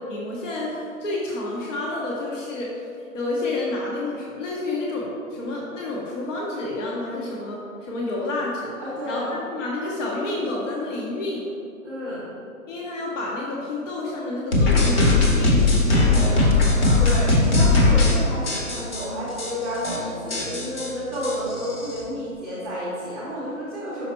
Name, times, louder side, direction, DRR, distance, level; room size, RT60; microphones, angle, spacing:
voice 1, 0.1-2.9 3.1-8.7 9.0-9.2 9.5-11.5 12.7-16.6, left 2 dB, 60° left, -4 dB, 1.1 m, -29 dB
voice 2, 8.8-9.3 11.8-12.3 17.0-24.1, equal, ahead, -9 dB, 0.6 m, -31 dB
sound 1, 14.5-18.1 18.5-19.0 19.4-19.5 19.7-20.0 20.3-22.0, left 3 dB, 45° left, 1.2 m, -19 dB
5.8 x 4.0 x 4.3 m, 2.5 s
hypercardioid pair, 160°, 43 cm